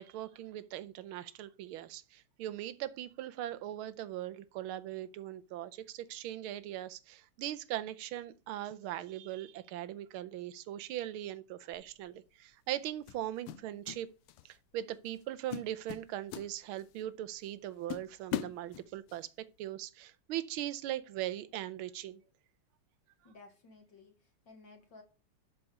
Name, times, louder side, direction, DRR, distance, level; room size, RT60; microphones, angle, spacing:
voice 1, 0.0-14.1 14.4-19.3 19.6-22.2, right 13 dB, 80° right, 1.5 m, -40 dB
sound 1, 11.7-12.0 13.1-14.0 14.3-14.6 15.1-15.2 15.5-17.0 17.4-17.5 17.9-19.2, left 12 dB, 85° left, 1.6 m, -40 dB
voice 2, 23.2-25.0, left 3 dB, 60° left, 2.4 m, -56 dB
11.5 x 4.5 x 5.4 m
omnidirectional pair, 2.4 m